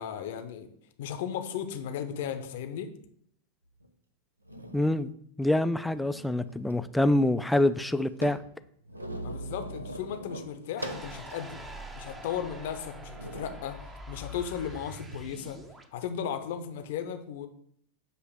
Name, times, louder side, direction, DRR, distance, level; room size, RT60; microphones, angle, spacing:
voice 1, 0.0-2.9 9.2-11.6 11.9-13.8 14.1-15.6 15.9-17.5, left 8 dB, 55° left, 8 dB, 0.7 m, -36 dB
sound 1, 3.8-3.9 4.4-5.0 5.7-6.8 7.0-7.1 7.4-11.2 11.7-11.8 12.5-12.7 13.1-13.6 14.6-15.2, right 1 dB, 85° right, 0.6 m, -41 dB
voice 2, 4.7-5.1 5.4-8.4, left 1 dB, 5° left, 12 dB, 0.3 m, -25 dB
sound 2, 10.8-15.9, equal, 15° right, 0.7 m, -44 dB
7.7 x 2.9 x 6.1 m, 0.67 s
figure-of-eight pair, 90°, 0 cm